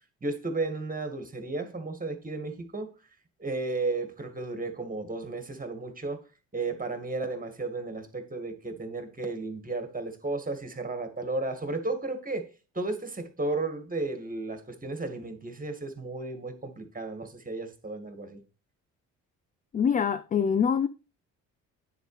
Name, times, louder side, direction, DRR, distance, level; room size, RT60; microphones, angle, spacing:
voice 1, 0.2-2.9 3.4-6.2 6.5-12.5 12.7-18.4, right 3 dB, 20° right, 2.1 m, -33 dB
voice 2, 19.7-20.9, left 7 dB, 20° left, 0.4 m, -24 dB
10.5 x 7.2 x 3.4 m
figure-of-eight pair, 45°, 44 cm